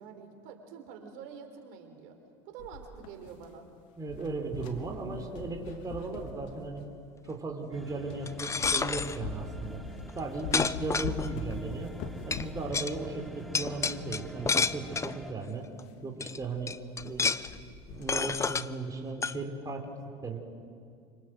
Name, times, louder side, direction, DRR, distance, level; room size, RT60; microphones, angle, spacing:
voice 1, 0.0-2.2 2.5-3.7, right 6 dB, 65° right, 5 dB, 4.2 m, -47 dB
sound 1, 2.6-3.7 4.0-7.0 7.6-7.7 8.1-8.3 8.6-14.7 14.9-15.0 15.3-15.4 15.8-16.0 16.4-16.5 16.8-17.2 17.5-18.4, left 4 dB, 60° left, 3.0 m, -42 dB
voice 2, 4.0-6.8 7.3-9.8 10.2-11.9 12.3-15.7 16.0-16.7 17.0-17.3 17.9-19.9 20.2-20.4, right 3 dB, 25° right, 2 dB, 4.1 m, -36 dB
sound 2, 7.7-15.3, equal, ahead, 1.4 m, -46 dB
sound 3, 8.3-9.2 10.1-10.2 10.5-11.5 12.3-12.4 12.7-12.9 13.5-15.2 15.8-15.9 16.2-16.4 16.7-17.5 18.1-18.7 19.2-19.4, left 5 dB, 20° left, 0.9 m, -29 dB
28.0 x 25.5 x 7.9 m, 2.3 s
hypercardioid pair, 85°, 15 cm